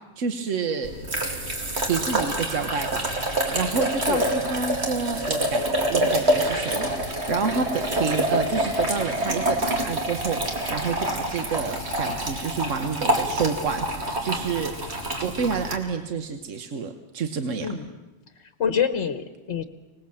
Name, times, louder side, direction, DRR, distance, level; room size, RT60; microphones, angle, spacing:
voice 1, 0.2-0.9 1.9-3.1 3.5-14.7 15.2-17.8, right 5 dB, 75° right, 7 dB, 1.4 m, -29 dB
sound 1, 0.8-15.8, right 1 dB, 55° right, 2.8 m, -26 dB
voice 2, 17.6-18.0 18.6-19.6, left 7 dB, 65° left, 10 dB, 1.3 m, -26 dB
25.5 x 19.0 x 7.6 m, 1.1 s
omnidirectional pair, 1.3 m